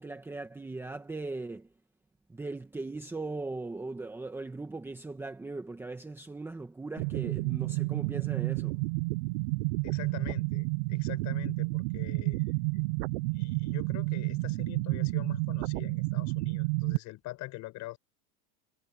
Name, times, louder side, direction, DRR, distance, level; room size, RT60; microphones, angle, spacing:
voice 1, 0.0-1.7 2.3-8.8, right 3 dB, 5° right, 1.4 m, -39 dB
sound 1, 7.0-17.0, right 27 dB, 45° right, 0.6 m, -30 dB
voice 2, 9.8-12.9 13.3-18.0, left 18 dB, 35° left, 6.9 m, -44 dB
supercardioid pair, 160°, 48 cm